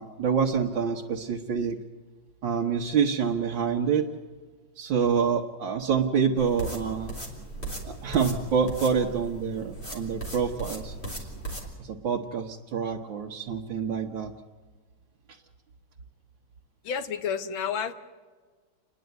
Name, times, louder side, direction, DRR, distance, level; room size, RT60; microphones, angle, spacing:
voice 1, 0.0-1.8 2.4-4.1 4.8-7.2 7.8-11.3 11.8-14.3 15.3-15.4, right 6 dB, 75° right, -1 dB, 1.9 m, -27 dB
sound 1, 6.4-11.7, right 2 dB, 30° left, 4.0 m, -37 dB
voice 2, 16.8-17.9, left 7 dB, 80° left, 9 dB, 1.9 m, -30 dB
29.5 x 11.0 x 9.3 m, 1.4 s
omnidirectional pair, 2.2 m